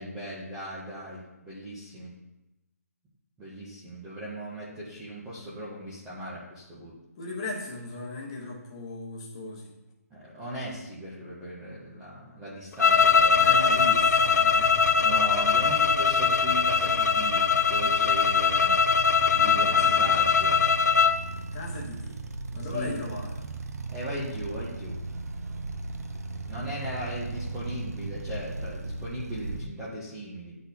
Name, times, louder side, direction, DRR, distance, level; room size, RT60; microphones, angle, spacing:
voice 1, 0.0-2.1 3.4-6.9 10.1-13.9 15.0-17.4 17.7-18.8 19.3-20.6 22.7-23.0 23.9-25.0 26.5-30.6, right 1 dB, 5° right, -9 dB, 0.4 m, -38 dB
voice 2, 7.2-9.7 13.4-14.8 19.7-20.3 21.5-22.2 22.5-23.5, left 2 dB, 20° left, -3 dB, 0.9 m, -37 dB
sound 1, 12.8-21.2, left 6 dB, 85° left, 0.5 m, -22 dB
sound 2, 12.8-29.7, right 3 dB, 70° right, 0.6 m, -37 dB
10.0 x 4.0 x 2.7 m, 0.97 s
hypercardioid pair, 175°, 9 cm